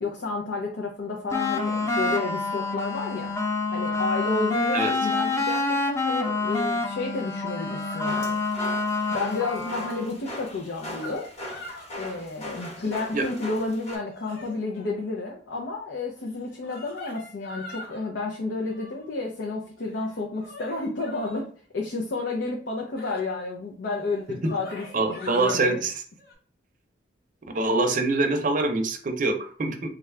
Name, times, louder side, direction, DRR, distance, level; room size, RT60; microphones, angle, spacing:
voice 1, 0.0-3.3 3.7-8.4 9.1-11.3 12.0-25.8, left 3 dB, 80° left, -1 dB, 0.6 m, -31 dB
sound 1, 1.3-10.1, left 3 dB, 15° left, 0.4 m, -27 dB
sound 2, 7.2-7.3 7.6-8.3 8.9-9.7 10.2-11.9 12.4-12.9 13.6-14.9 16.3-18.1 18.5-19.1 19.8-21.4 23.0-23.2 23.9-24.0 24.2-25.6 26.2-26.3, left 1 dB, 60° left, 1.0 m, -42 dB
sound 3, 8.1-14.0, left 1 dB, 40° left, 1.0 m, -39 dB
voice 2, 24.9-25.9 27.5-29.9, right 3 dB, 50° right, 5 dB, 0.6 m, -24 dB
3.6 x 2.3 x 3.2 m, 0.44 s
head